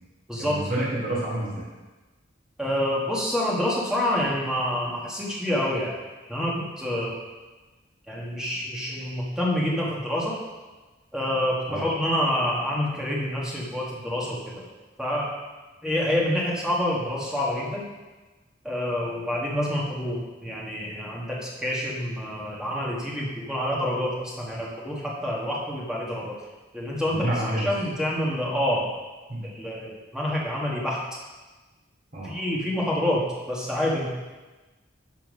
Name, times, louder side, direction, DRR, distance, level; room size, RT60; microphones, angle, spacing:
voice 1, 0.4-1.6 11.7-11.8 27.1-27.7 29.3-29.4 32.1-32.3, right 1 dB, 40° right, -6 dB, 2.5 m, -28 dB
voice 2, 2.6-6.0 6.3-7.2 8.1-10.3 11.1-14.7 15.0-15.3 15.8-17.8 18.6-26.4 26.7-27.2 27.6-28.9 29.4-31.0 32.2-34.1, left 1 dB, 5° right, -5 dB, 1.7 m, -27 dB
12.0 x 4.6 x 5.3 m, 1.2 s
head